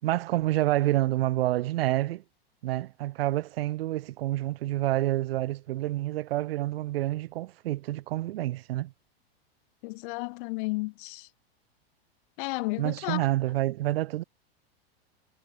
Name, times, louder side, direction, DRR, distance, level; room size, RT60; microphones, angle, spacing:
voice 1, 0.0-2.2 2.6-8.9 12.8-14.2, right 16 dB, 70° right, 3.5 m, -28 dB
voice 2, 9.8-11.3 12.4-13.2, left 26 dB, 55° left, 1.0 m, -32 dB
hypercardioid pair, 115°, 31 cm